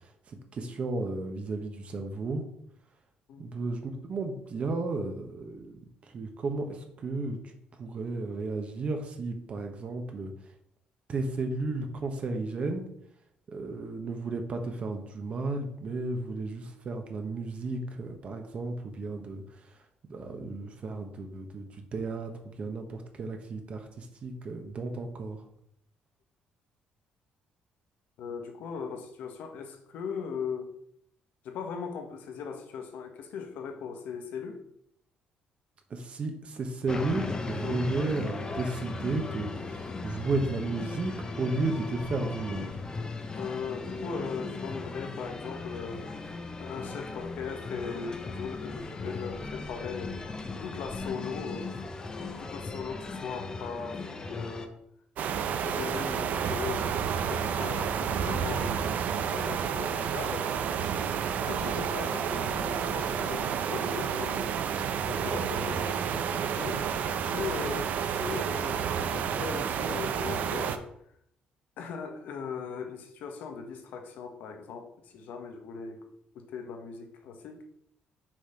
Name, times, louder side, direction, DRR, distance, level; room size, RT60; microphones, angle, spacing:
voice 1, 0.3-2.4 3.4-5.8 6.1-7.4 7.8-10.3 11.1-12.8 13.5-19.6 20.1-25.4 35.9-42.9, right 3 dB, 45° right, 5 dB, 1.1 m, -33 dB
voice 2, 28.2-30.7 31.4-34.6 37.6-37.9 43.4-46.1 46.6-50.3 50.6-51.7 52.4-54.8 55.6-57.0 57.3-60.5 61.3-64.7 65.1-70.9 71.8-76.1 76.3-77.6, left 6 dB, 80° left, 5 dB, 1.2 m, -39 dB
sound 1, 36.9-54.7, left 3 dB, 25° left, 0.8 m, -37 dB
sound 2, 55.2-70.8, right 7 dB, 65° right, 0.6 m, -30 dB
6.2 x 4.3 x 5.0 m, 0.72 s
cardioid pair, 110°, 3 cm